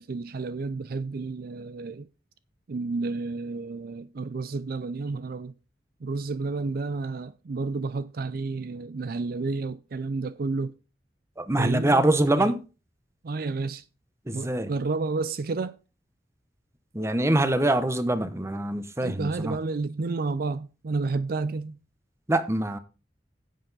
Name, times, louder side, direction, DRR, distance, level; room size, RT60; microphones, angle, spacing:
voice 1, 0.0-2.1 2.7-5.5 6.0-10.7 11.6-12.0 12.4-12.5 13.2-13.8 14.3-15.8 19.0-21.8, right 3 dB, 60° right, 0.5 m, -31 dB
voice 2, 11.4-12.6 14.3-14.7 16.9-19.6 22.3-22.8, right 1 dB, 15° right, 0.9 m, -24 dB
10.0 x 7.8 x 4.0 m
head